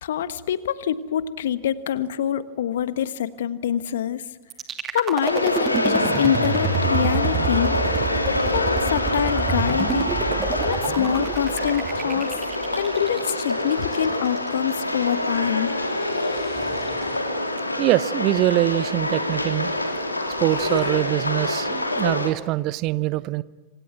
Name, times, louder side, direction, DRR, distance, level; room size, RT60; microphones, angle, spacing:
voice 1, 0.0-4.2 4.9-7.8 8.2-10.1 10.6-12.4 12.7-15.7, left 10 dB, 60° left, 14 dB, 1.3 m, -25 dB
sound 1, 4.5-14.5, right 6 dB, 25° right, 2.6 m, -28 dB
sound 2, 5.2-22.3, left 1 dB, 85° left, 3.0 m, -26 dB
sound 3, 13.5-14.6 15.5-17.5 18.1-18.2 18.4-18.5 18.7-19.1 19.4-19.6 19.9-21.0, left 6 dB, 30° left, 4.4 m, -44 dB
voice 2, 17.8-19.7 20.4-23.4, right 17 dB, 40° right, 18 dB, 0.9 m, -23 dB
27.0 x 25.5 x 7.7 m, 1.2 s
figure-of-eight pair, 90°, 0 cm